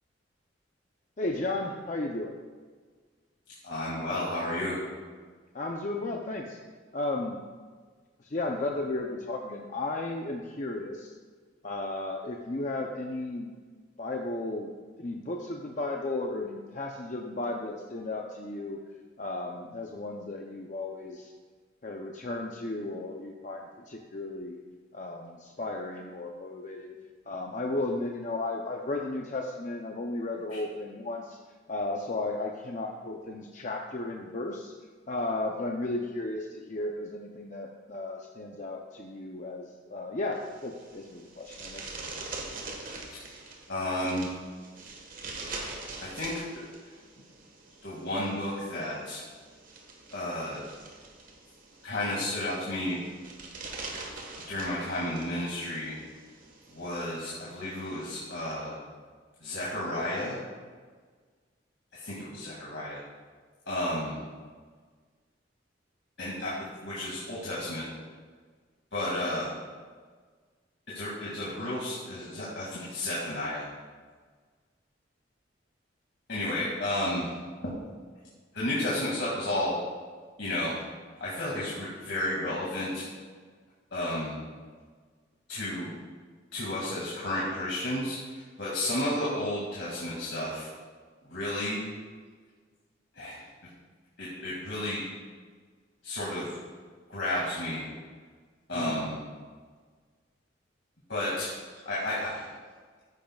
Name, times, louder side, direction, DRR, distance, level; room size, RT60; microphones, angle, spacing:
voice 1, 1.2-2.3 5.5-6.6 6.9-7.4 8.2-11.1 11.6-13.5 14.0-18.8 19.2-21.3 21.8-24.6 24.9-26.9 27.3-31.4 31.7-34.7 35.1-41.8 98.7-99.1, left 2 dB, 40° left, 1 dB, 0.7 m, -34 dB
voice 2, 3.6-4.8 43.1-43.2 43.7-44.3 46.0-46.3 47.8-49.2 50.1-50.6 51.8-53.0 54.5-55.9 56.7-58.8 59.4-60.4 61.9-63.0 63.7-64.2 66.2-66.5 66.8-67.9 68.9-69.5 70.9-73.7 76.3-77.3 77.6-77.7 78.5-79.8 80.4-80.8 81.2-83.1 83.9-84.4 85.5-85.9 86.5-90.7 91.2-91.9 93.1-93.4 94.2-95.0 96.0-96.6 97.1-97.8 98.7-99.1 101.1-101.5 101.9-102.5, left 1 dB, 65° left, -7 dB, 2.3 m, -32 dB
sound 1, 40.3-58.5, right 3 dB, 45° right, 1.5 m, -44 dB
14.0 x 10.5 x 2.4 m, 1.5 s
head